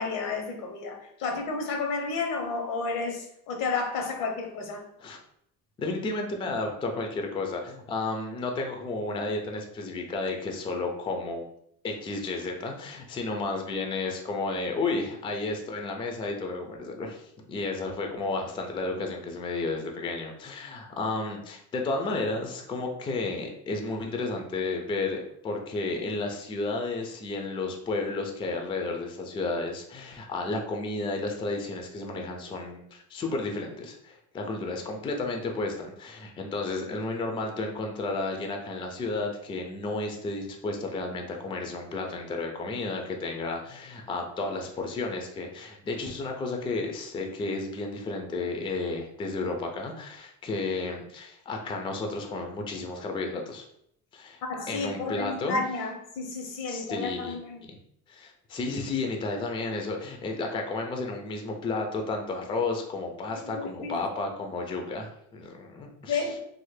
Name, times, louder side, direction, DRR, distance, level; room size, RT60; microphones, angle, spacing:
voice 1, 0.0-4.8 54.5-57.6 63.4-64.0 66.1-66.4, left 4 dB, 85° left, 0.8 m, -31 dB
voice 2, 5.8-11.5 11.8-53.7 54.1-54.4 54.7-55.6 56.7-57.4 57.6-57.7 58.1-66.2, left 3 dB, 15° left, 0.3 m, -32 dB
3.2 x 2.1 x 3.1 m
cardioid pair, 145°, 33 cm